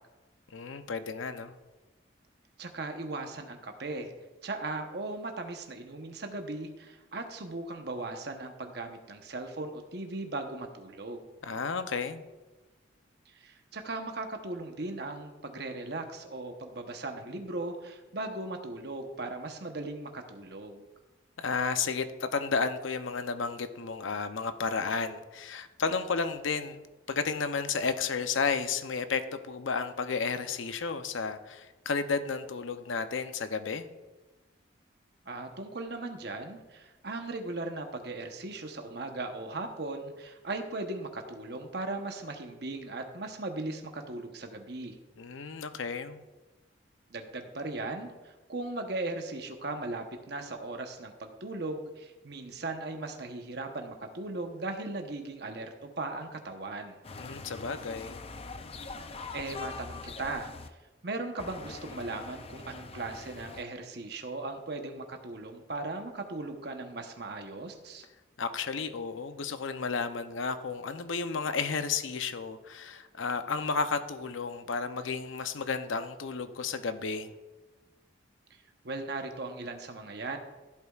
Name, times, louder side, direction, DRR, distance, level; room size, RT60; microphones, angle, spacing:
voice 1, 0.5-1.6 11.4-12.2 21.4-26.8 27.1-33.9 45.2-46.2 57.2-58.2 68.4-77.3, left 5 dB, 80° left, 10 dB, 0.6 m, -32 dB
voice 2, 2.6-4.1 4.4-11.3 13.3-20.9 35.3-45.0 47.1-57.0 59.3-60.5 61.0-68.1 78.8-80.4, right 2 dB, 55° right, 5 dB, 0.9 m, -38 dB
sound 1, 57.0-60.7 61.4-63.6, left 4 dB, 30° left, 0.4 m, -43 dB
15.0 x 8.4 x 2.4 m, 1.2 s
head